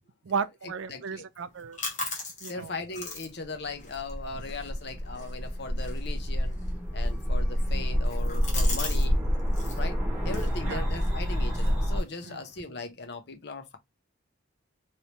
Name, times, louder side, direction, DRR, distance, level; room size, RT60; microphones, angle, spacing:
voice 1, 0.2-1.8 2.4-2.7 10.7-10.9 12.2-12.4, right 6 dB, 80° right, 0.4 m, -34 dB
voice 2, 0.9-1.3 2.4-6.6 6.9-9.2 9.8-13.8, left 3 dB, 60° left, 0.7 m, -38 dB
sound 1, 1.4-9.1 9.3-9.8 10.3-12.6, left 3 dB, 40° left, 1.1 m, -41 dB
sound 2, 3.8-12.0, equal, 5° right, 1.3 m, -28 dB
3.2 x 2.8 x 2.9 m
head